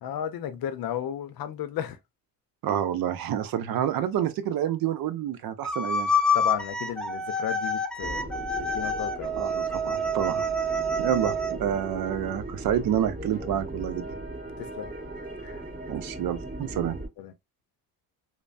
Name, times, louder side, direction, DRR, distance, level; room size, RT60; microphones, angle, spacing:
voice 1, 0.0-2.0 6.3-9.4 14.6-14.9 15.4-15.6 17.2-17.3, left 9 dB, 70° left, 0.6 m, -34 dB
voice 2, 2.6-6.1 9.3-10.5 11.0-14.1 15.9-17.0, right 10 dB, 70° right, 0.6 m, -28 dB
sound 1, 5.6-11.6, left 1 dB, ahead, 0.5 m, -27 dB
sound 2, 8.0-17.1, right 1 dB, 25° right, 1.8 m, -38 dB
3.1 x 2.0 x 2.5 m
cardioid pair, 75°, 36 cm